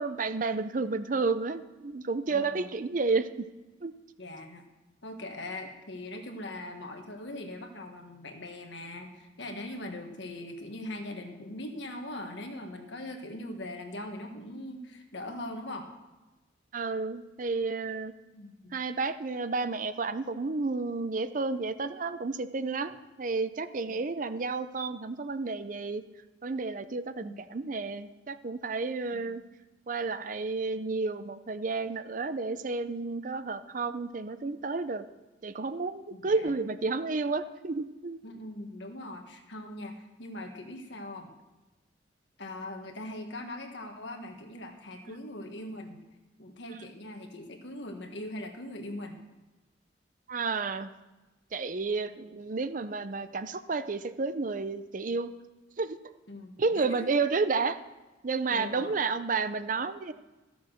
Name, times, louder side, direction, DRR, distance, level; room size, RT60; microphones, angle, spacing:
voice 1, 0.0-3.3 3.8-3.9 16.7-18.1 18.7-26.0 26.4-29.4 29.9-35.0 35.4-38.2 50.3-50.9 51.5-55.3 55.8-56.0 56.6-57.8 58.2-60.1, right 4 dB, 45° right, 12 dB, 0.5 m, -31 dB
voice 2, 2.3-2.7 4.2-4.6 5.0-15.9 18.3-18.7 23.9-24.0 27.2-27.4 29.1-29.3 36.1-36.5 38.2-41.3 42.4-46.0 46.4-49.2 56.3-57.0 58.5-58.9, left 1 dB, 70° left, 4 dB, 1.5 m, -41 dB
13.5 x 7.0 x 6.5 m, 1.1 s
head